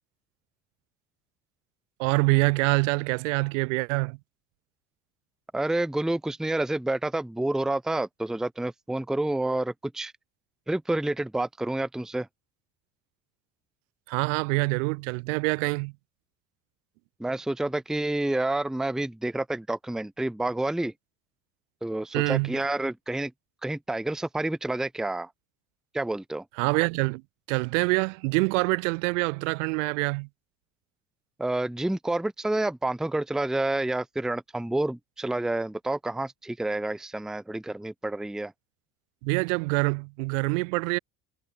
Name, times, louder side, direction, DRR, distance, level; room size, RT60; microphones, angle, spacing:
voice 1, 2.0-4.2 14.1-15.9 22.1-22.6 26.6-27.2 27.5-30.3 39.2-41.0, right 29 dB, 85° right, 3.0 m, -25 dB
voice 2, 5.5-10.1 10.7-12.3 17.2-20.9 21.8-23.3 23.6-25.3 25.9-26.4 31.4-38.5, right 2 dB, ahead, 0.7 m, -29 dB
supercardioid pair, 95°, 37 cm